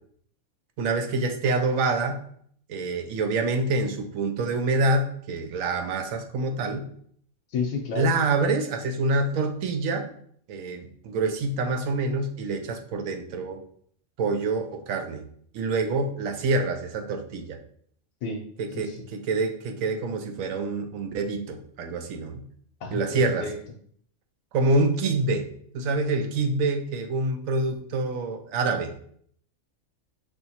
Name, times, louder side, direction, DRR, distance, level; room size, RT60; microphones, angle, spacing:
voice 1, 0.8-2.2 2.7-6.9 7.9-10.1 10.5-13.6 14.2-15.2 15.5-17.6 18.6-22.4 22.9-23.5 24.5-25.5 25.7-28.9, right 3 dB, 85° right, 5 dB, 1.0 m, -26 dB
voice 2, 7.5-8.1 18.2-18.4 18.7-19.0 22.8-23.5, left 4 dB, 80° left, -1 dB, 1.0 m, -30 dB
5.5 x 2.9 x 2.8 m, 0.62 s
omnidirectional pair, 1.4 m